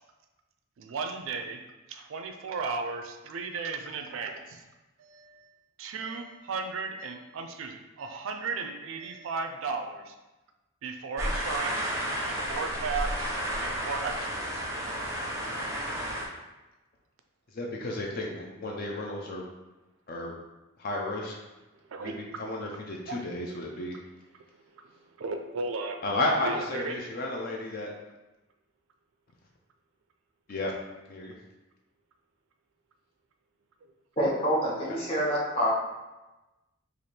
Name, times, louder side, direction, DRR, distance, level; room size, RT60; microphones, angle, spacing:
voice 1, 0.8-1.6 1.9-4.6 5.0-5.5 5.8-10.1 10.8-12.0 12.3-14.7 21.9-22.2 23.1-23.2 24.5-26.0 26.4-27.0, right 4 dB, 65° right, 5 dB, 0.4 m, -35 dB
sound 1, 11.2-16.3, equal, 15° right, 0.5 m, -32 dB
voice 2, 17.5-19.4 20.1-20.3 20.8-21.3 22.0-24.0 26.0-27.9 30.5-30.7 31.1-31.3, left 1 dB, 45° left, 0 dB, 0.4 m, -32 dB
voice 3, 34.2-35.7, equal, 25° left, -7 dB, 1.0 m, -27 dB
3.2 x 2.5 x 4.2 m, 1.1 s
head